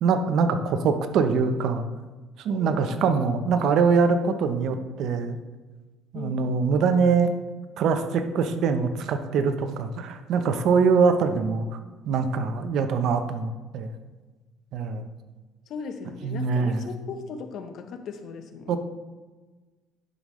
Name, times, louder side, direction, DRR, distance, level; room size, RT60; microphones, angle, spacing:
voice 1, 0.0-1.8 2.4-5.4 6.1-7.3 7.8-11.7 12.1-14.0 14.7-15.1 16.2-16.9 18.7-18.8, right 5 dB, 60° right, 8 dB, 0.7 m, -23 dB
voice 2, 2.6-2.9 6.1-6.4 15.7-18.8, left 5 dB, 55° left, 7 dB, 0.8 m, -37 dB
11.0 x 5.2 x 3.2 m, 1.3 s
cardioid pair, 110°, 0 cm